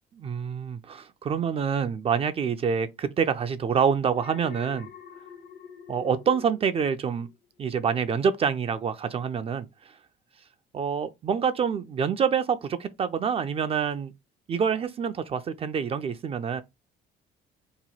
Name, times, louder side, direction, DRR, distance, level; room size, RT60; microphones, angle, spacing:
voice 1, 0.2-4.9 5.9-7.3 7.6-9.9 10.7-14.1 14.5-16.6, right 6 dB, 35° right, 0.3 m, -27 dB
Alarm, 4.1-7.4 7.8-8.2, left 7 dB, 70° left, 0.9 m, -45 dB
2.9 x 2.2 x 4.1 m
cardioid pair, 110°, 17 cm